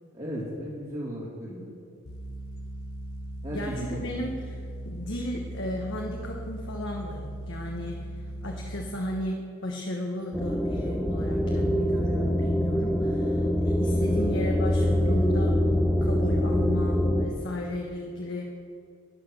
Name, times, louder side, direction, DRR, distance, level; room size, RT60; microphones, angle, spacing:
voice 1, 0.1-1.7 3.4-4.0 14.0-14.2, equal, 30° right, -8 dB, 2.2 m, -36 dB
sound 1, 2.0-8.9, right 1 dB, 80° left, 1.3 m, -38 dB
voice 2, 3.5-8.0 8.4-15.6 16.0-18.5, left 1 dB, 55° left, 0 dB, 1.2 m, -35 dB
sound 2, 10.3-17.3, equal, 5° left, 0.8 m, -24 dB
12.5 x 10.0 x 6.2 m, 2.4 s
head